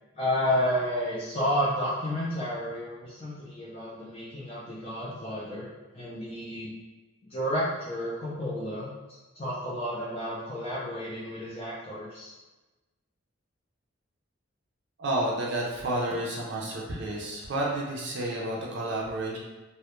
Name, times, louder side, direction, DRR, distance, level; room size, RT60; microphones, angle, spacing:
voice 1, 0.2-5.7 5.9-6.7 7.3-8.9 9.3-12.3, equal, 30° left, -9 dB, 0.4 m, -31 dB
voice 2, 15.0-19.4, right 1 dB, 55° right, -3 dB, 0.4 m, -30 dB
2.2 x 2.0 x 2.8 m, 1.1 s
head